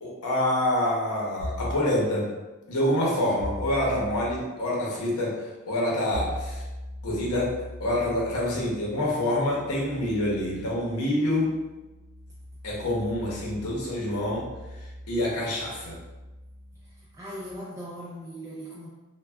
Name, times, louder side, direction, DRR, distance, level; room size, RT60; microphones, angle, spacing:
voice 1, 0.0-2.3 2.7-6.6 7.0-7.5 7.8-11.5 12.6-14.5 14.7-16.0, left 1 dB, 90° left, -4 dB, 0.8 m, -27 dB
sound 1, 1.4-1.8 3.4-4.3 6.1-17.5, left 1 dB, 30° left, 0.8 m, -40 dB
voice 2, 16.8-18.9, equal, 15° right, -7 dB, 0.3 m, -39 dB
3.2 x 2.2 x 2.2 m, 1.1 s
head